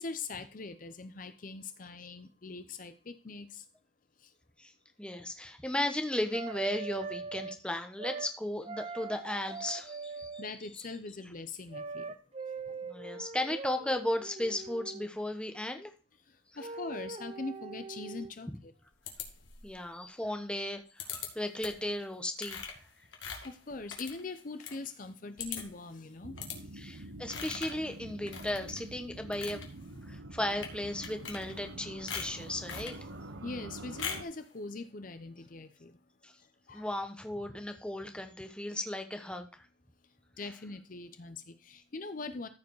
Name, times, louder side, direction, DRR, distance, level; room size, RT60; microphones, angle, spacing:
voice 1, 0.0-3.6 4.2-4.3 10.4-12.1 12.7-12.8 16.6-18.7 23.4-26.4 33.4-36.0 36.7-36.9 40.4-42.5, left 3 dB, 45° left, 10 dB, 0.6 m, -42 dB
voice 2, 5.0-10.9 12.9-15.9 19.6-22.7 26.8-29.6 30.1-32.9 36.2-36.3 36.7-39.7, left 1 dB, 5° left, 6 dB, 1.0 m, -35 dB
sound 1, 6.3-7.6 8.0-8.3 8.6-10.5 11.7-15.1 16.6-18.3, right 4 dB, 35° right, 0.7 m, -42 dB
sound 2, 19.1-19.8 21.0-21.3 21.6-21.9 22.4-24.8 25.1-25.2 25.4-25.8 26.4-26.6 27.3-27.8 28.3-28.8 29.2-29.7 30.5-30.7 31.0-31.7 32.1-33.0 34.0-34.3, left 6 dB, 80° left, 2.2 m, -41 dB
sound 3, 26.2-34.2, right 1 dB, 75° right, 0.8 m, -46 dB
14.0 x 4.9 x 4.6 m, 0.36 s
head